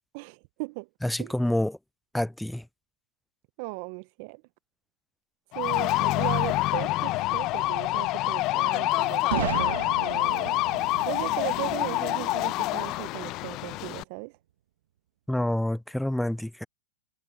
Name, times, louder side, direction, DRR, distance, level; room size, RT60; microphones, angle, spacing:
voice 1, 0.1-0.9 1.2-1.3 3.6-4.4 5.5-10.6 11.0-14.4, right 28 dB, 50° right, 0.8 m, -37 dB
voice 2, 1.0-1.8 2.1-2.6 15.3-16.7, left 1 dB, 5° left, 0.3 m, -27 dB
sound 1, 5.5-14.0, left 19 dB, 40° left, 0.9 m, -27 dB
Boom, 9.3-13.1, right 12 dB, 65° right, 1.8 m, -35 dB
hypercardioid pair, 105°, 0 cm